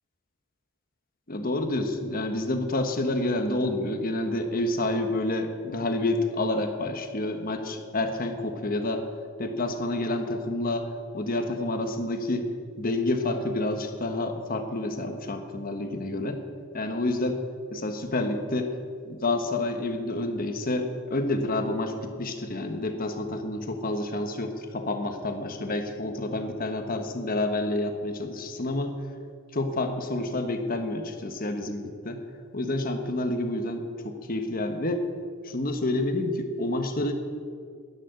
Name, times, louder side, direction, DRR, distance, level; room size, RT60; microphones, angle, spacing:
voice 1, 1.3-9.0 9.4-12.5 12.8-16.4 16.7-17.4 17.7-18.7 19.1-28.9 29.5-32.2 32.5-35.0 35.4-37.1, left 2 dB, 45° left, 6 dB, 1.3 m, -29 dB
11.0 x 10.5 x 8.2 m, 2.1 s
head